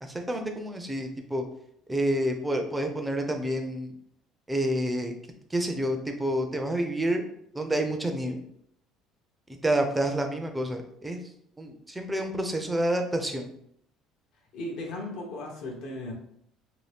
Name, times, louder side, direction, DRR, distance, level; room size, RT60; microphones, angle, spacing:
voice 1, 0.0-1.4 1.9-3.9 4.5-5.1 5.5-7.2 7.5-8.4 9.6-11.2 11.6-13.5, right 1 dB, 10° right, 4 dB, 0.4 m, -28 dB
voice 2, 14.5-16.1, left 1 dB, 65° left, 0 dB, 0.7 m, -36 dB
2.7 x 2.6 x 3.3 m, 0.70 s
cardioid pair, 135°, 0 cm